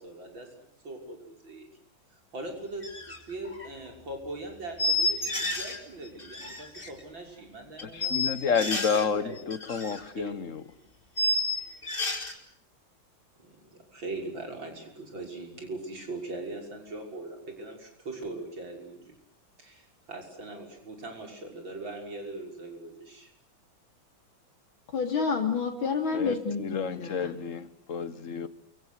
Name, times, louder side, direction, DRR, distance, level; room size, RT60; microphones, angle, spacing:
voice 1, 0.0-1.7 2.3-9.4 10.2-10.4 13.4-19.1 19.6-23.3, right 2 dB, 70° right, 3 dB, 6.9 m, -41 dB
sound 1, 2.8-3.2 3.4-3.7 4.8-5.8 6.0-6.9 7.8-9.1 9.4-10.0 10.2-10.3 11.2-12.3, left 2 dB, 25° left, 3.8 m, -30 dB
voice 2, 7.8-10.6 26.1-28.5, left 6 dB, 45° left, 14 dB, 1.6 m, -30 dB
voice 3, 24.9-27.4, left 5 dB, 85° left, 4 dB, 3.9 m, -29 dB
29.0 x 24.0 x 8.3 m, 0.63 s
omnidirectional pair, 2.1 m